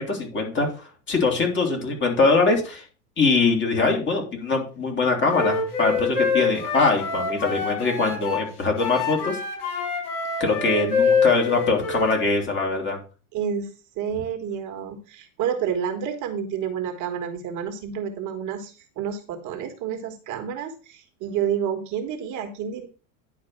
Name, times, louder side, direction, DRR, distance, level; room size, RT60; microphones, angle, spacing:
voice 1, 0.0-2.8 3.2-9.4 10.4-13.0, left 3 dB, 25° left, 2 dB, 3.0 m, -22 dB
Wind instrument woodwind instrument, 5.3-8.5 8.8-12.2, left 5 dB, 55° left, 5.6 m, -25 dB
voice 2, 13.3-13.7 14.0-22.9, right 8 dB, 40° right, 5 dB, 1.6 m, -29 dB
10.0 x 4.7 x 5.6 m, 0.35 s
supercardioid pair, 125°, 44 cm